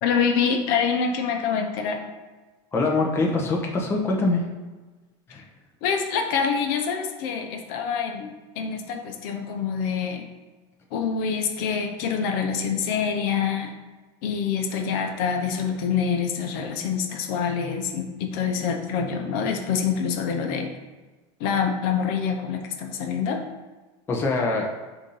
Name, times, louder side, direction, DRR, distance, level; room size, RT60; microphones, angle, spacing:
voice 1, 0.0-2.0 5.8-10.3 10.9-13.7 14.2-20.7 21.4-23.4, left 6 dB, 55° left, 4 dB, 0.9 m, -26 dB
voice 2, 2.7-4.4 5.3-5.4 24.1-24.7, left 3 dB, 15° left, -1 dB, 0.8 m, -23 dB
6.9 x 2.8 x 5.5 m, 1.3 s
supercardioid pair, 160°, 15 cm